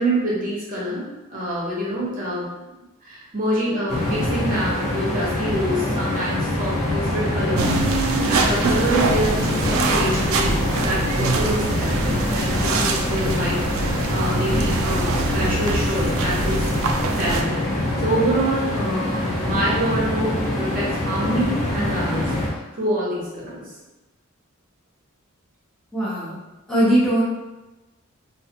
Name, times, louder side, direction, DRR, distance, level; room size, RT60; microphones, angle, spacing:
voice 1, 0.0-2.4 3.0-7.7 8.1-16.7 17.1-23.7, right 1 dB, 40° right, -6 dB, 0.8 m, -26 dB
sound 1, 3.9-22.5, left 1 dB, 35° left, 0.9 m, -25 dB
sound 2, 7.6-17.4, right 3 dB, 65° right, 0.3 m, -24 dB
voice 2, 25.9-26.4 26.7-27.2, right 1 dB, ahead, -10 dB, 0.7 m, -19 dB
2.4 x 2.3 x 2.8 m, 1.1 s
head